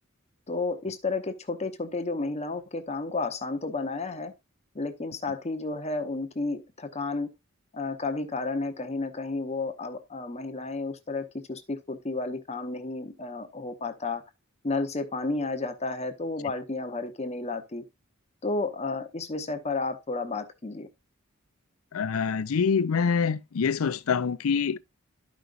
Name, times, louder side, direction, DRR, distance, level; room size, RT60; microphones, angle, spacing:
voice 1, 0.5-4.3 4.7-7.3 7.7-14.2 14.6-17.8 18.4-20.9, left 3 dB, 30° left, 0.8 m, -32 dB
voice 2, 21.9-24.8, left 6 dB, 85° left, 0.5 m, -25 dB
12.5 x 5.2 x 2.5 m
head